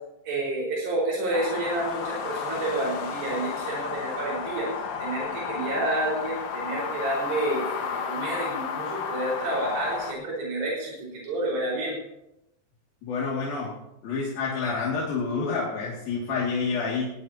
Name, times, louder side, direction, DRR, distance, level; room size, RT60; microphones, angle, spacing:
voice 1, 0.3-4.7 5.0-12.0, right 2 dB, 85° right, -4 dB, 7.0 m, -29 dB
sound 1, 1.3-10.1, left 6 dB, 60° left, 2.8 m, -32 dB
voice 2, 13.0-13.7 14.0-17.1, left 4 dB, 90° left, -5 dB, 4.4 m, -28 dB
20.5 x 18.0 x 2.9 m, 0.87 s
omnidirectional pair, 4.1 m